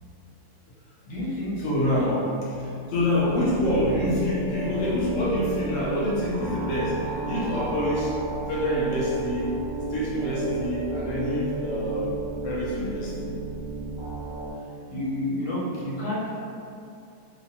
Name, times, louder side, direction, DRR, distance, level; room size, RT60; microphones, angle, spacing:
voice 1, 1.1-1.6 2.0-2.3 3.3-3.5 14.9-16.4, left 1 dB, 55° left, -8 dB, 1.1 m, -30 dB
voice 2, 1.6-2.2 2.7-8.2 8.5-9.5 9.9-12.1 12.4-13.3, left 1 dB, 75° left, -6 dB, 0.6 m, -26 dB
sound 1, 3.0-14.5, right 2 dB, 40° right, 1.1 m, -32 dB
3.0 x 2.6 x 2.7 m, 2.5 s
omnidirectional pair, 1.9 m